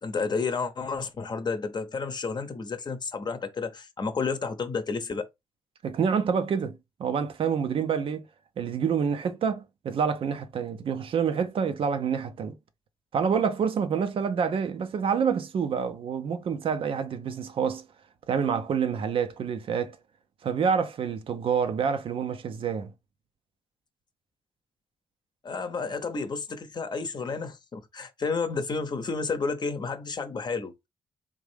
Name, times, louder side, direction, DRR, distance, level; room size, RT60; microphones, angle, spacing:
voice 1, 0.0-5.3 25.4-30.9, left 4 dB, 45° left, 0.8 m, -31 dB
voice 2, 5.8-8.3 8.6-12.6 13.1-17.8 18.3-20.0 20.4-22.9, right 6 dB, 60° right, 0.6 m, -27 dB
3.6 x 2.6 x 3.3 m
hypercardioid pair, 45°, 10 cm